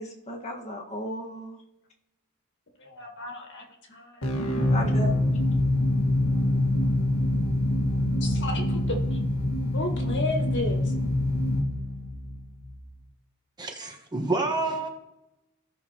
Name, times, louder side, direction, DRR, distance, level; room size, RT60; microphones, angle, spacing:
voice 1, 0.0-1.6 4.7-5.3, equal, 30° left, 0 dB, 1.5 m, -35 dB
voice 2, 2.8-3.6 3.9-4.2 8.2-9.2 9.7-10.9, left 1 dB, 55° left, 2 dB, 1.7 m, -33 dB
sound 1, 4.2-12.9, left 1 dB, 80° left, 1.6 m, -25 dB
voice 3, 13.6-14.9, right 2 dB, 20° right, 2 dB, 1.2 m, -28 dB
16.0 x 6.1 x 2.9 m, 0.90 s
head